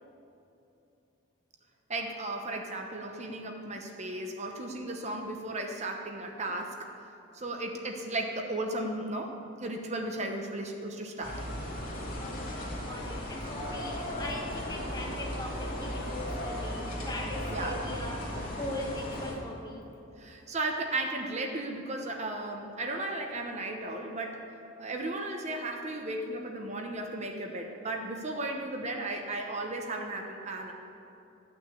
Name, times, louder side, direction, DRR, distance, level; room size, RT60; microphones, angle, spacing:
voice 1, 1.9-6.9 7.3-9.3 9.6-11.4 17.5-17.8 20.2-24.4 24.8-30.7, right 2 dB, 35° right, 0.9 m, -35 dB
sound 1, 11.2-19.3, left 1 dB, 45° left, 2.5 m, -36 dB
voice 2, 12.2-19.8, left 1 dB, 20° left, 1.4 m, -40 dB
13.5 x 6.2 x 8.3 m
head